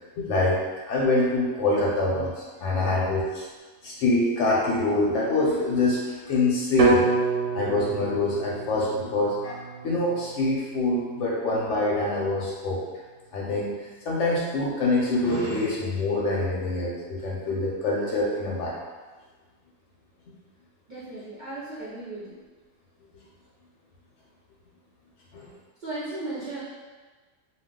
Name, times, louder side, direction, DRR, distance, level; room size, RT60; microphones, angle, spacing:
voice 1, 0.2-0.6 0.9-3.4 3.8-7.0 7.5-12.8 13.3-13.7 14.1-18.7 25.3-25.5, left 2 dB, 65° left, -4 dB, 0.9 m, -25 dB
voice 2, 2.6-3.1 20.9-22.4 25.8-26.6, right 2 dB, 50° right, -10 dB, 0.6 m, -36 dB
sound 1, 6.8-10.8, right 4 dB, 70° right, 0.9 m, -26 dB
2.3 x 2.3 x 3.6 m, 1.3 s
omnidirectional pair, 1.4 m